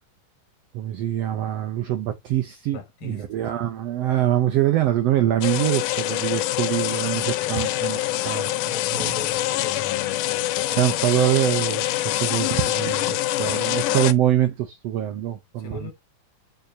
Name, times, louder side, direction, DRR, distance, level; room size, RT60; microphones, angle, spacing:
voice 1, 0.7-8.6 8.9-9.1 10.8-15.9, right 12 dB, 80° right, 1.4 m, -24 dB
voice 2, 2.7-3.3 4.1-4.2 7.4-7.7 8.1-8.2 8.5-10.9 15.6-15.9, left 6 dB, 65° left, 2.1 m, -39 dB
sound 1, 5.4-14.1, left 16 dB, 85° left, 2.1 m, -25 dB
6.7 x 5.1 x 2.7 m
omnidirectional pair, 3.7 m